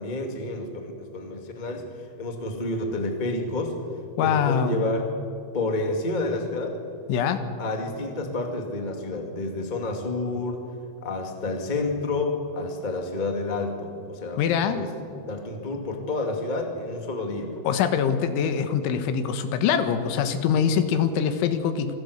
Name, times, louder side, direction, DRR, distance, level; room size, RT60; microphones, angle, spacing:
voice 1, 0.0-3.8 4.2-5.0 5.5-6.8 7.6-10.6 11.0-14.9 15.3-17.6, left 2 dB, 30° left, 3 dB, 0.8 m, -29 dB
voice 2, 4.2-4.8 7.1-7.4 14.4-14.8 17.7-22.0, left 7 dB, 85° left, 9 dB, 3.8 m, -23 dB
26.5 x 17.0 x 8.1 m, 2.6 s
omnidirectional pair, 5.3 m